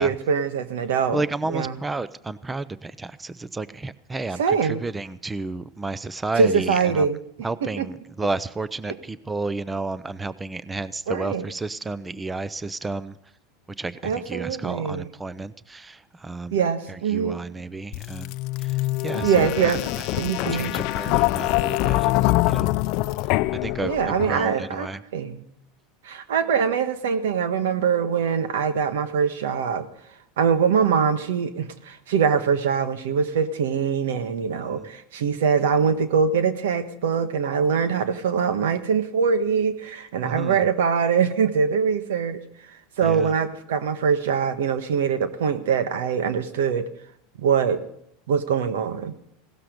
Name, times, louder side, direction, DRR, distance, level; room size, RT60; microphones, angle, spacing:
voice 1, 0.0-1.8 4.4-4.8 6.3-7.2 7.6-7.9 8.9-9.0 11.1-11.4 14.0-15.1 16.5-17.4 19.2-19.8 20.2-20.7 23.8-25.4 26.0-29.9 30.4-42.4 43.0-46.9 47.4-47.8 48.3-49.1, right 6 dB, 90° right, 10 dB, 1.4 m, -23 dB
voice 2, 1.1-7.1 7.4-13.2 13.8-16.6 17.1-18.3 18.6-18.7 19.0-19.8 20.4-22.7 23.6-25.0 34.6-34.9 40.2-40.6 43.0-43.3, right 3 dB, 15° right, 16 dB, 0.6 m, -31 dB
sound 1, 17.9-24.7, left 20 dB, 60° left, 0.5 m, -24 dB
17.0 x 12.5 x 5.2 m, 0.73 s
supercardioid pair, 120°, 0 cm